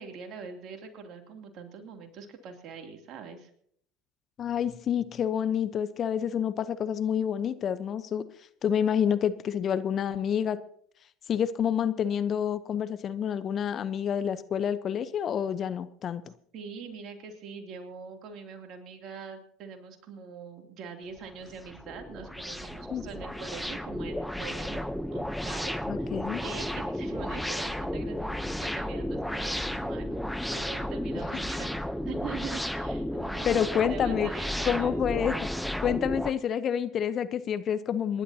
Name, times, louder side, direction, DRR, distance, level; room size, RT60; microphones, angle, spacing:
voice 1, 0.0-3.5 16.5-24.8 25.1-26.1 26.4-30.1 30.5-35.0, right 6 dB, 50° right, 4 dB, 2.9 m, -43 dB
voice 2, 4.4-8.3 8.6-10.6 11.3-16.3 22.9-23.0 25.9-26.4 33.4-34.3 34.6-35.4 35.8-38.2, left 8 dB, 40° left, 13 dB, 0.9 m, -28 dB
sound 1, 21.2-36.3, left 1 dB, ahead, 0.8 m, -33 dB
27.5 x 11.5 x 2.9 m, 0.65 s
hypercardioid pair, 75°, 0 cm